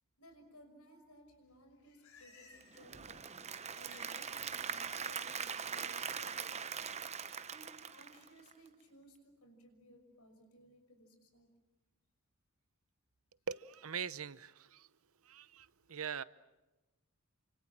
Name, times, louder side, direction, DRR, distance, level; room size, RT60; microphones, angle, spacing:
voice 1, 0.2-3.1 3.7-6.8 7.5-11.5, equal, 90° left, 6 dB, 6.2 m, -60 dB
Livestock farm animals working animals, 1.5-2.9 3.2-4.2 4.5-5.8 6.3-6.7, left 4 dB, 70° left, 5.1 m, -63 dB
Applause / Crowd, 2.6-8.7, right 6 dB, 30° right, 0.9 m, -42 dB
voice 2, 13.5-14.9 15.2-16.2, right 7 dB, 70° right, 16 dB, 0.8 m, -42 dB
29.0 x 26.0 x 7.4 m, 1.0 s
head